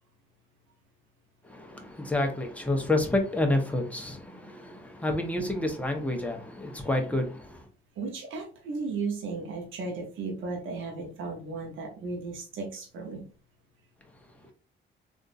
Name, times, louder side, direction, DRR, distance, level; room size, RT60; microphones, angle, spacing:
voice 1, 1.4-7.6, left 2 dB, 5° left, 0.9 m, -29 dB
voice 2, 8.0-13.3, right 4 dB, 80° right, 0.9 m, -35 dB
3.5 x 2.6 x 2.5 m
cardioid pair, 90°, 20 cm